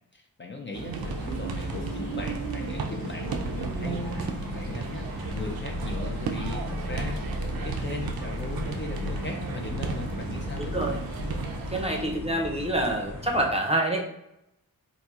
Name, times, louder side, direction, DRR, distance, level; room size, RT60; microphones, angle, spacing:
voice 1, 0.1-11.0, left 3 dB, 35° left, 1 dB, 0.4 m, -38 dB
sound 1, 0.7-12.0, right 6 dB, 80° right, 0.5 m, -35 dB
sound 2, 1.0-13.5, left 2 dB, 65° left, 0.9 m, -39 dB
sound 3, 1.0-11.6, left 1 dB, 15° left, 1.1 m, -37 dB
voice 2, 10.6-11.0 11.7-14.0, right 1 dB, 20° right, 1 dB, 0.5 m, -27 dB
4.2 x 2.6 x 2.3 m, 0.85 s
wide cardioid pair, 105°, 36 cm